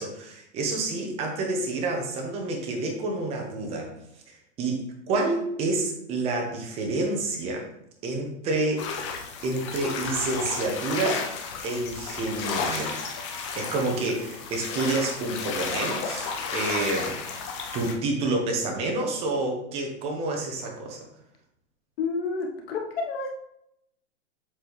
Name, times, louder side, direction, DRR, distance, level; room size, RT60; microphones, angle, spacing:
voice 1, 0.0-3.9 4.6-4.8 5.1-7.7 8.0-8.9 9.4-11.2 11.6-13.0 13.5-17.1 17.7-21.0, right 2 dB, 15° right, 1 dB, 0.8 m, -28 dB
sound 1, 8.8-17.9, left 5 dB, 25° left, 0.5 m, -32 dB
voice 2, 22.0-23.3, left 4 dB, 55° left, 1 dB, 1.3 m, -29 dB
7.4 x 4.0 x 3.3 m, 0.78 s
hypercardioid pair, 160°, 36 cm